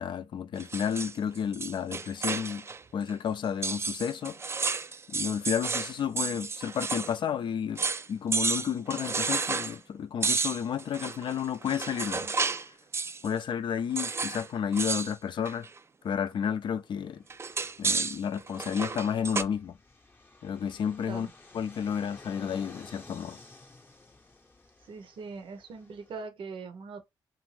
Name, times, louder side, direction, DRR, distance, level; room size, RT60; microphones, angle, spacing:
voice 1, 0.0-2.7 2.9-4.7 5.1-12.3 13.2-15.7 16.0-17.2 17.8-19.8 20.4-21.3 21.5-23.4, left 8 dB, 55° left, 0.4 m, -31 dB
sound 1, 0.6-2.8 3.1-3.2 3.6-7.2 7.4-7.5 7.8-8.1 8.3-9.8 10.2-12.7 12.9-13.3 14.0-14.5 14.7-15.1 15.5-15.8 17.3-19.4, right 4 dB, 25° right, 0.3 m, -31 dB
Fixed-wing aircraft airplane, 17.0-26.2, left 2 dB, 20° left, 0.7 m, -54 dB
voice 2, 24.9-27.1, right 4 dB, 65° right, 0.7 m, -41 dB
2.6 x 2.5 x 3.1 m
supercardioid pair, 50°, 10 cm